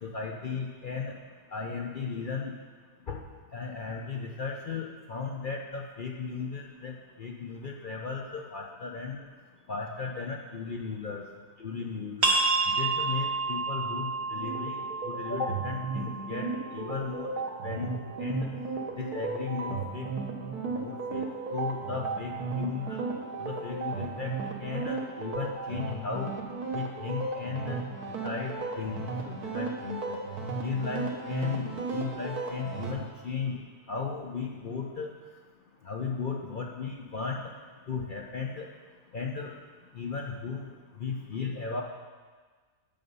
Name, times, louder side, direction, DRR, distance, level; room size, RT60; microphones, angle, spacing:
voice 1, 0.0-1.1 1.5-2.5 3.1-3.2 3.5-9.2 9.7-11.2 11.6-12.3 12.7-17.3 17.6-18.5 18.9-20.1 20.7-23.1 23.4-24.3 24.6-26.3 26.7-27.8 28.2-30.2 30.6-33.6 33.9-35.1 35.8-37.4 37.9-38.7 39.1-39.5 39.9-40.7 41.0-41.8, left 5 dB, 60° left, 0 dB, 0.5 m, -35 dB
sound 1, 12.2-17.6, right 3 dB, 60° right, 1.4 m, -30 dB
sound 2, 14.4-32.9, right 4 dB, 75° right, 1.7 m, -35 dB
9.1 x 6.8 x 5.4 m, 1.5 s
omnidirectional pair, 1.7 m